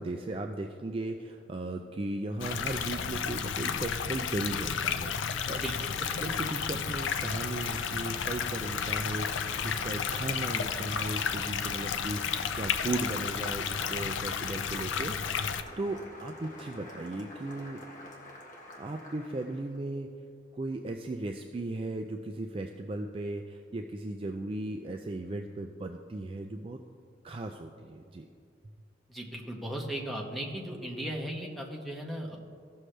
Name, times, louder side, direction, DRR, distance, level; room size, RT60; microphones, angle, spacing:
voice 1, 0.0-5.6 6.2-15.4 15.8-17.8 18.8-20.1 20.5-26.8 27.2-28.3, right 2 dB, 30° right, 4 dB, 0.3 m, -36 dB
sound 1, 2.4-15.6, left 7 dB, 75° left, 0.4 m, -32 dB
Applause, 5.4-19.8, left 1 dB, 40° left, 1.3 m, -48 dB
sound 2, 7.5-18.3, left 1 dB, 25° left, 0.8 m, -56 dB
voice 2, 29.1-32.4, right 1 dB, ahead, -1 dB, 1.0 m, -36 dB
16.0 x 6.3 x 3.3 m, 2.3 s
head